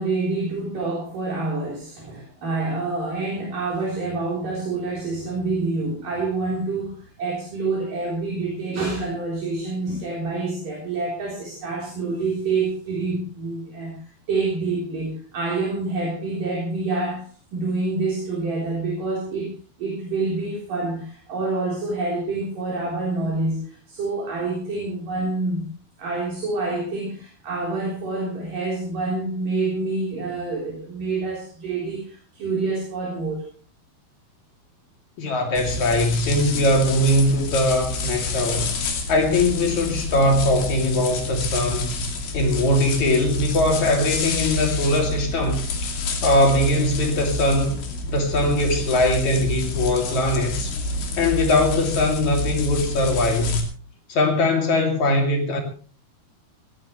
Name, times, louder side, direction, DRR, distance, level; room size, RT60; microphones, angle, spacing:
voice 1, 0.0-13.9 14.3-19.5 19.8-25.6 26.0-33.5 38.5-38.7, right 3 dB, 55° right, 5.4 m, -27 dB
voice 2, 35.2-38.7 39.1-42.0 42.3-45.9 46.2-47.8 48.1-50.8 51.2-53.6 54.1-55.6, left 1 dB, 50° left, 3.9 m, -21 dB
sound 1, 35.6-53.6, left 2 dB, 80° left, 4.6 m, -28 dB
18.0 x 17.0 x 3.2 m
omnidirectional pair, 4.5 m